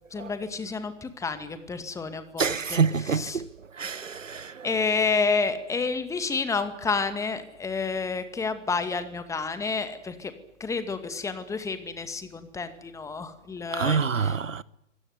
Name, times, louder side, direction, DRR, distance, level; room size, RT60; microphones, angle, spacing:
voice 1, 0.1-2.8 3.1-3.4 4.6-10.3 10.6-14.4, left 4 dB, 10° left, 2.2 m, -30 dB
voice 2, 2.4-3.5 3.7-4.7 13.7-14.6, right 6 dB, 80° right, 1.1 m, -27 dB
25.0 x 18.0 x 9.6 m
figure-of-eight pair, 120°, 38 cm